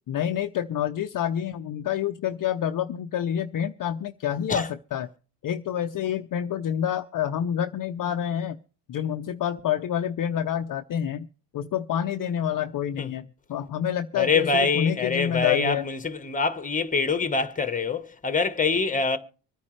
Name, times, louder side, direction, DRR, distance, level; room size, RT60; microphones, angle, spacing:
voice 1, 0.1-5.1 5.4-8.6 8.9-11.3 11.5-15.8, left 9 dB, 40° left, 0.7 m, -28 dB
voice 2, 14.1-19.2, left 4 dB, 15° left, 1.2 m, -25 dB
25.0 x 9.7 x 3.2 m
cardioid pair, 115°, 49 cm